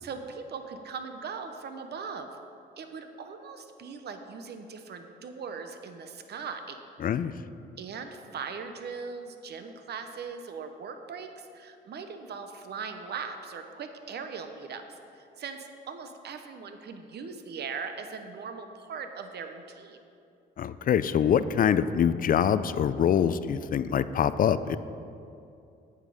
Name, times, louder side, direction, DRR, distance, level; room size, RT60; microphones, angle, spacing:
voice 1, 0.0-2.3 2.8-6.8 7.8-20.0, right 5 dB, 55° right, 7 dB, 0.9 m, -40 dB
voice 2, 7.0-7.3 20.6-24.8, left 8 dB, 45° left, 14 dB, 0.4 m, -24 dB
9.0 x 8.0 x 5.0 m, 2.6 s
cardioid pair, 90°, 20 cm